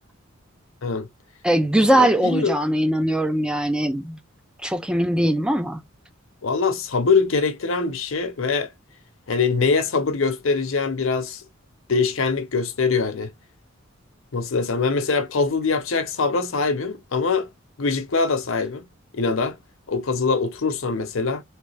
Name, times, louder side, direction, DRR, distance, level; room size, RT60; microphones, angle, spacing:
voice 1, 1.4-4.2 4.6-5.8, right 1 dB, 5° right, 0.3 m, -21 dB
voice 2, 2.0-2.5 6.4-8.7 9.3-11.4 11.9-13.3 14.3-17.5 17.8-18.8 19.1-19.6 19.9-21.4, left 4 dB, 80° left, 0.8 m, -23 dB
3.3 x 3.2 x 3.3 m
head